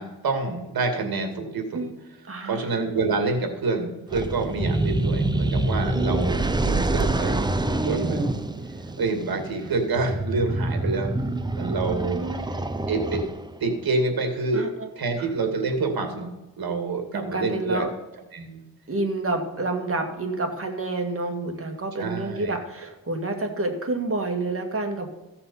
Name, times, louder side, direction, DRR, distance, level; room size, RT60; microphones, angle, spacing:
voice 1, 0.0-1.9 2.5-7.5 7.8-8.3 9.0-11.2 11.5-12.2 12.9-13.2 13.6-14.6 15.0-16.3 16.6-17.9 18.3-18.6 22.0-22.5, right 3 dB, 75° right, 4 dB, 2.4 m, -27 dB
voice 2, 2.3-2.7 5.9-6.3 11.7-12.5 14.5-14.9 15.2-15.3 17.1-17.9 18.9-25.1, right 2 dB, 35° right, 4 dB, 2.0 m, -29 dB
sound 1, 4.1-13.6, right 2 dB, 10° right, 0.7 m, -26 dB
15.5 x 5.8 x 5.5 m, 1.0 s
wide cardioid pair, 105°, 37 cm